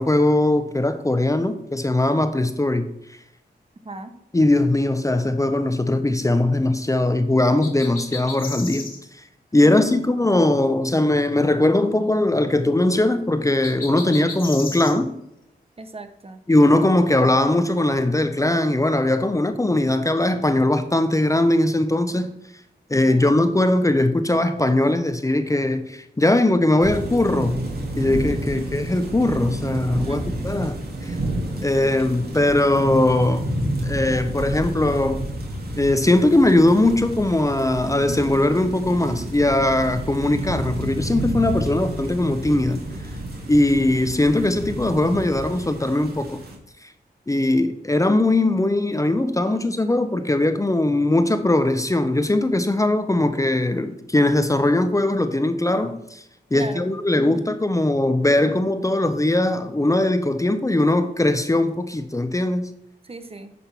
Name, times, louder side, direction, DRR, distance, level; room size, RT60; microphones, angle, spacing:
voice 1, 0.0-2.9 4.3-8.9 9.2-9.3 9.5-15.1 16.5-22.3 22.9-27.6 28.0-31.1 31.6-33.5 33.8-35.2 35.8-42.8 43.5-46.4 47.3-56.2 56.5-62.7, left 1 dB, 20° left, 0.7 m, -20 dB
voice 2, 3.8-4.1 9.6-9.7 15.8-16.4 22.9-23.3 28.6-28.7 30.0-30.7 31.8-32.3 49.4-49.8 56.5-56.9 57.1-57.6 63.0-63.5, right 2 dB, 35° right, 0.9 m, -38 dB
sound 1, 7.6-9.0 13.6-14.9, left 4 dB, 55° left, 1.9 m, -34 dB
sound 2, 26.8-46.6, right 1 dB, 65° right, 2.1 m, -30 dB
sound 3, 36.9-45.6, right 2 dB, 80° right, 1.5 m, -42 dB
10.0 x 3.6 x 6.0 m
cardioid pair, 65°, 17 cm